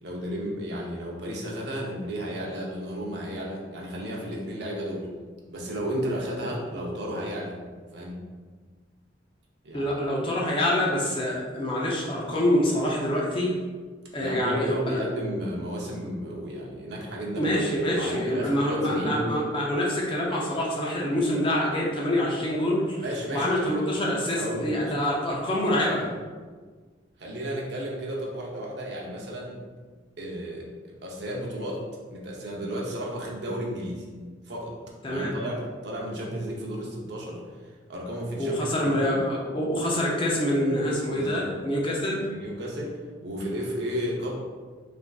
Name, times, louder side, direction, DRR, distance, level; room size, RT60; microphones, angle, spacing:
voice 1, 0.0-5.1 5.5-7.5 7.9-8.2 9.6-9.9 14.1-19.2 23.0-23.9 24.2-24.9 27.2-29.6 30.2-31.8 32.1-34.1 34.5-34.8 35.1-39.1 41.1-41.5 42.3-44.4, equal, 65° right, -3 dB, 0.6 m, -33 dB
voice 2, 9.7-13.6 14.1-14.8 17.4-23.0 23.3-26.1 35.0-35.4 38.4-42.3, left 1 dB, 30° left, -3 dB, 0.4 m, -26 dB
3.3 x 2.5 x 2.3 m, 1.5 s
head